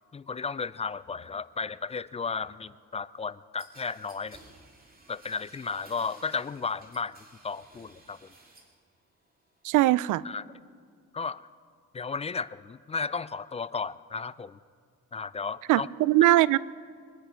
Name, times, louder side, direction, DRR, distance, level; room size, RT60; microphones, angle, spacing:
voice 1, 0.1-4.4 5.1-7.2 7.4-8.3 10.2-10.4 11.1-11.4 11.9-14.6 15.1-15.9, left 5 dB, 20° left, 18 dB, 0.3 m, -34 dB
sound 1, 3.6-8.8 9.1-9.8, right 2 dB, 30° right, 2.7 m, -55 dB
voice 2, 9.6-10.2 15.7-16.6, right 16 dB, 80° right, 20 dB, 0.5 m, -21 dB
23.0 x 10.0 x 5.1 m, 2.1 s
cardioid pair, 90°, 30 cm